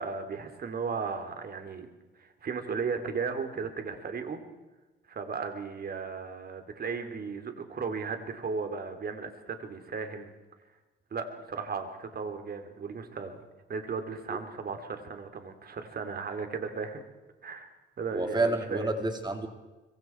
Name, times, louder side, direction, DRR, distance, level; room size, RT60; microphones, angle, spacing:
voice 1, 0.0-1.9 2.2-4.4 5.1-10.3 11.1-13.4 13.7-17.0 17.4-17.7 18.0-18.9, right 5 dB, 50° right, 7 dB, 3.3 m, -35 dB
voice 2, 18.1-19.5, right 2 dB, 20° right, 5 dB, 3.2 m, -29 dB
25.5 x 24.5 x 4.6 m, 1.2 s
cardioid pair, 90°, 20 cm